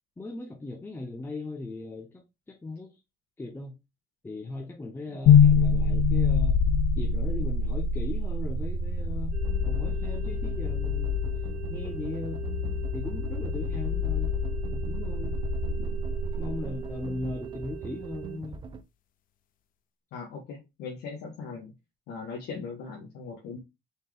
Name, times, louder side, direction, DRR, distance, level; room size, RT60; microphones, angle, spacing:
voice 1, 0.2-2.9 3.4-3.8 4.2-6.6 7.0-9.4 9.7-11.2 11.7-12.4 12.9-14.3 14.7-15.3 15.8-16.0 16.4-18.6, left 2 dB, 15° left, 0.7 m, -38 dB
sound 1, 5.3-17.3, left 5 dB, 55° left, 0.5 m, -26 dB
sound 2, 9.3-18.4, right 9 dB, 75° right, 0.8 m, -42 dB
sound 3, 9.4-18.8, right 4 dB, 30° right, 0.5 m, -42 dB
voice 2, 20.1-21.7 22.1-23.6, left 5 dB, 80° left, 1.3 m, -39 dB
4.2 x 3.6 x 3.2 m
cardioid pair, 110°, 17 cm